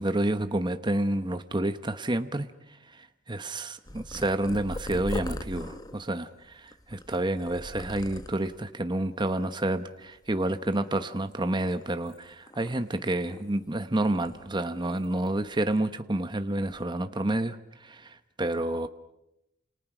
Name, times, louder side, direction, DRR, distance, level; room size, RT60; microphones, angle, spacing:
voice 1, 0.0-18.9, right 1 dB, 25° right, 9 dB, 1.0 m, -29 dB
Purr, 3.9-8.7 9.3-9.7 10.0-11.2 11.6-13.7 14.0-15.3 15.5-15.8 16.5-16.8, left 1 dB, 20° left, 1.0 m, -41 dB
29.5 x 28.0 x 6.1 m, 0.90 s
head